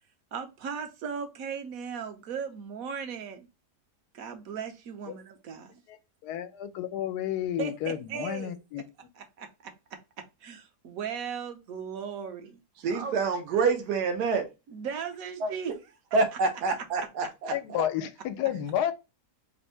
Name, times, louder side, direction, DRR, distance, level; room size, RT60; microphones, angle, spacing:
voice 1, 0.3-3.5 4.1-5.7 7.6-8.6 9.1-9.7 10.4-12.6 12.9-13.1 14.7-15.7, right 7 dB, 65° right, 1.1 m, -37 dB
voice 2, 6.2-8.8 17.5-18.9, left 11 dB, 90° left, 1.1 m, -31 dB
voice 3, 12.8-14.4 15.4-15.5 16.1-17.8, right 4 dB, 85° right, 1.3 m, -27 dB
3.3 x 2.6 x 4.3 m
omnidirectional pair, 1.7 m